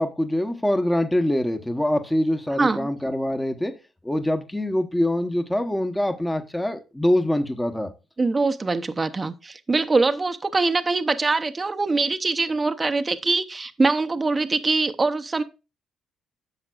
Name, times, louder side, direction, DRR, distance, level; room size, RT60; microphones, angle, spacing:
voice 1, 0.0-3.7 4.0-7.9, left 1 dB, 10° left, 1.1 m, -24 dB
voice 2, 2.6-2.9 8.2-15.4, right 3 dB, 25° right, 0.8 m, -23 dB
11.0 x 7.3 x 2.4 m
cardioid pair, 90°, 0 cm